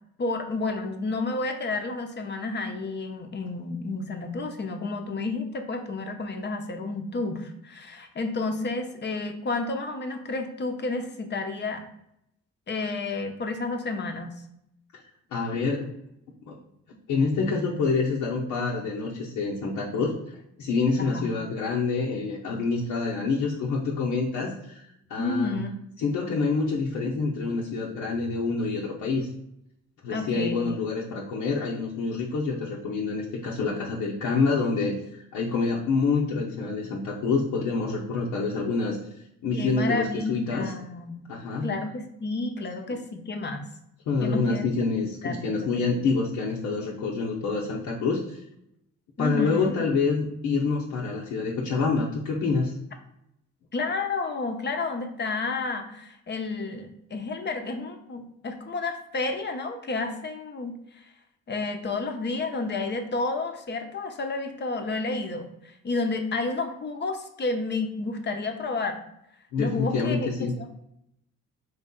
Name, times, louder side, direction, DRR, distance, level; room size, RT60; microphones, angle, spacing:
voice 1, 0.2-11.8 12.7-14.3 21.0-21.3 25.2-25.7 30.1-30.8 39.5-41.3 41.6-43.6 44.2-44.7 45.2-45.9 49.2-49.8 53.7-61.0 61.5-69.0 69.6-70.7, left 3 dB, 35° left, 5 dB, 0.8 m, -31 dB
voice 2, 15.3-15.9 16.4-16.6 17.1-20.1 20.6-24.8 25.1-25.6 26.0-29.3 30.0-39.0 39.4-40.7 41.3-41.7 44.1-48.4 49.2-52.7 69.5-70.5, left 4 dB, 85° left, -4 dB, 0.9 m, -27 dB
4.2 x 3.3 x 3.7 m, 0.79 s
cardioid pair, 90°, 30 cm